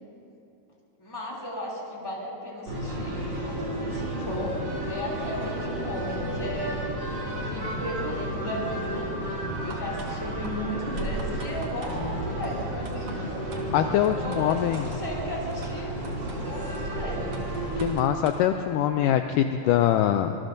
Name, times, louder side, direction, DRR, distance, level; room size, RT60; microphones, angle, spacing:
voice 1, 1.0-6.8 7.2-9.1 9.5-13.2 14.2-15.9 16.4-17.4, left 1 dB, 5° left, -5 dB, 2.5 m, -35 dB
sound 1, 2.7-17.9, right 1 dB, 30° right, 3.3 m, -32 dB
sound 2, 9.7-10.1 10.4-10.5 11.0-12.0 12.4-12.5 12.9-13.2 13.5-13.6 14.0-15.0 15.6-15.7 16.0-16.4 16.7-16.8 17.3-18.4, right 4 dB, 50° right, 2.2 m, -44 dB
voice 2, 13.7-14.9 17.8-20.4, left 11 dB, 80° left, 6 dB, 2.0 m, -23 dB
25.0 x 21.5 x 2.7 m, 2.7 s
omnidirectional pair, 4.1 m